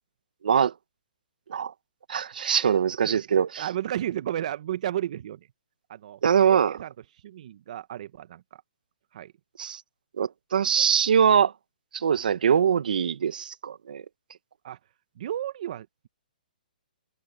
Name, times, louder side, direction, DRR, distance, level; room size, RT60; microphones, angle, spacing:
voice 1, 0.4-0.7 1.5-1.7 2.1-3.6 6.2-6.7 9.6-9.8 10.2-11.5 11.9-14.0, right 7 dB, 70° right, 1.4 m, -23 dB
voice 2, 3.0-5.4 5.9-6.2 6.5-8.6 9.1-9.3 14.6-14.8 15.2-16.1, right 11 dB, 50° right, 1.0 m, -33 dB
hypercardioid pair, 150°, 5 cm